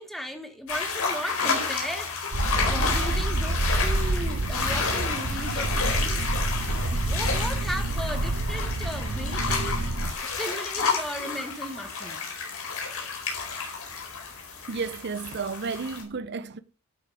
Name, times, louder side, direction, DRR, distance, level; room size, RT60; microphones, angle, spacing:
voice 1, 0.0-2.1 2.5-6.3 6.9-9.8 10.2-12.2, equal, ahead, 1.5 m, -36 dB
sound 1, 0.7-16.0, left 5 dB, 65° left, 4.4 m, -31 dB
sound 2, 2.3-10.1, right 2 dB, 85° right, 1.0 m, -28 dB
voice 2, 14.7-16.6, right 5 dB, 50° right, 0.6 m, -33 dB
12.0 x 8.0 x 5.0 m
head